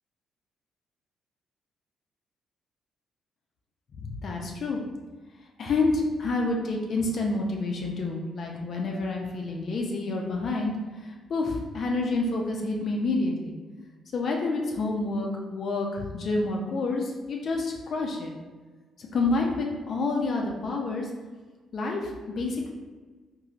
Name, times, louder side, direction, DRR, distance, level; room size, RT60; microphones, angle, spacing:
voice 1, 4.0-4.8 5.6-10.7 11.0-13.6 14.1-18.3 19.0-21.1 21.7-22.1 22.4-22.7, left 3 dB, 55° left, 0 dB, 0.4 m, -28 dB
3.1 x 2.6 x 2.4 m, 1.3 s
cardioid pair, 90°, 0 cm